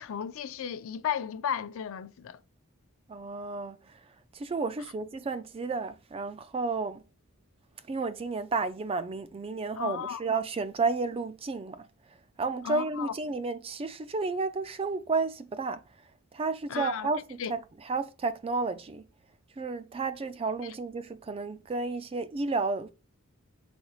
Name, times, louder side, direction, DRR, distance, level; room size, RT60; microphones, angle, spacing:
voice 1, 0.0-2.4 9.8-10.2 12.6-13.1 16.7-17.1 17.4-17.5, left 8 dB, 65° left, 0.4 m, -34 dB
voice 2, 3.1-4.0 4.3-7.0 7.9-11.9 12.4-15.8 16.3-19.1 19.6-22.9, right 4 dB, 25° right, 0.3 m, -32 dB
4.3 x 4.0 x 2.4 m
head